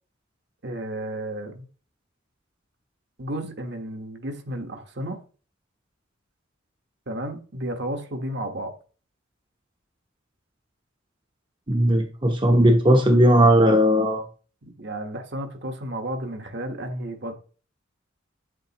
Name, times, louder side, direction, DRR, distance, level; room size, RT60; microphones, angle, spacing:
voice 1, 0.6-1.7 3.2-5.2 7.1-8.7 14.8-17.3, right 1 dB, 55° right, 1.3 m, -32 dB
voice 2, 11.7-14.2, equal, 25° right, 0.9 m, -17 dB
9.7 x 7.6 x 3.0 m
head